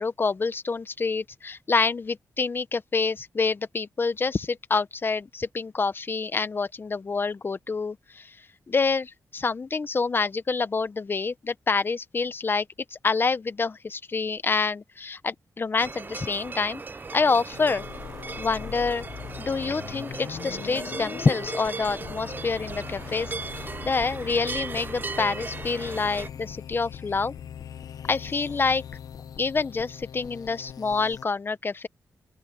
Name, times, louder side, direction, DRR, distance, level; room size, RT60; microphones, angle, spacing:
voice 1, 0.0-8.4 8.7-12.7 12.9-16.8 17.1-17.8 18.4-19.1 19.4-27.3 28.1-28.8 29.4-31.9, left 4 dB, 35° left, 0.8 m, -27 dB
sound 1, 15.8-26.3, right 4 dB, 30° right, 0.7 m, -37 dB
sound 2, 17.5-31.2, left 8 dB, 75° left, 0.9 m, -40 dB
open air
cardioid pair, 100°, 6 cm